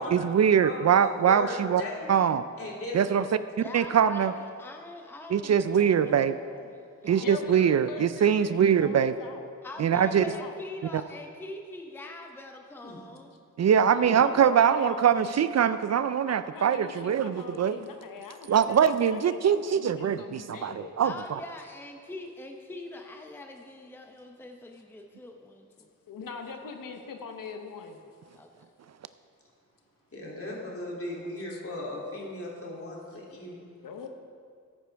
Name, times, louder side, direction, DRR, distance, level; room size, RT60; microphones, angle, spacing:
voice 1, 0.0-1.8 2.1-2.4 2.9-3.3 3.7-4.3 5.3-6.4 7.0-9.1 9.8-10.2 13.6-17.8 18.5-21.1, right 8 dB, 55° right, 13 dB, 0.4 m, -23 dB
voice 2, 0.6-2.2 2.6-3.0 7.4-7.7 12.8-13.0 30.1-33.6, left 1 dB, 45° left, -4 dB, 2.9 m, -38 dB
voice 3, 3.6-7.5 9.6-13.3 13.7-14.3 21.0-25.9 28.4-28.7, left 2 dB, 5° left, 3 dB, 0.7 m, -43 dB
voice 4, 7.2-9.5 9.8-10.6 13.9-15.4 16.3-21.0 26.1-28.0 31.5-31.6 33.6-34.1, left 5 dB, 90° left, 5 dB, 0.9 m, -42 dB
14.0 x 9.5 x 3.4 m, 2.2 s
wide cardioid pair, 90°, 32 cm